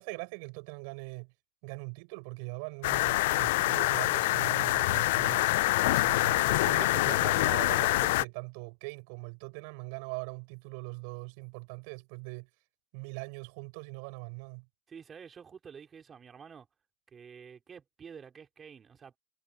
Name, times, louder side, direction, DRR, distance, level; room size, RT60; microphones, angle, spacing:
voice 1, 0.0-1.3 1.6-5.5 5.9-12.5 12.9-14.7, right 35 dB, 60° right, 7.3 m, -41 dB
sound 1, 2.8-8.2, left 19 dB, 65° left, 0.5 m, -26 dB
voice 2, 14.9-16.7 17.1-19.2, right 6 dB, 25° right, 4.0 m, -49 dB
hypercardioid pair, 100°, 0 cm